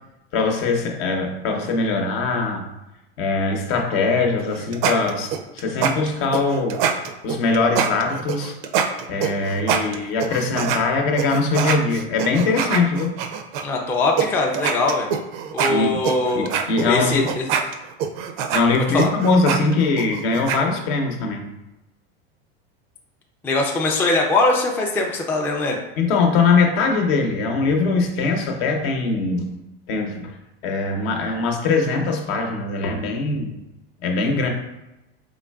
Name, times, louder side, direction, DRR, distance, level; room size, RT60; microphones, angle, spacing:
voice 1, 0.3-2.7 3.2-6.8 7.2-8.5 9.1-13.2 15.7-16.0 16.3-17.3 18.5-21.4 26.0-29.5 29.9-30.3 30.6-33.5 34.0-34.5, left 3 dB, 65° left, 3 dB, 0.8 m, -21 dB
sound 1, 4.4-10.8 11.2-13.6 14.2-14.3 14.5-20.6, right 7 dB, 65° right, 0.5 m, -24 dB
voice 2, 13.6-15.1 15.5-16.5 16.9-17.5 18.9-19.1 23.4-25.8, left 2 dB, 5° left, 0 dB, 0.3 m, -21 dB
3.8 x 3.2 x 2.3 m, 0.95 s
supercardioid pair, 115°, 31 cm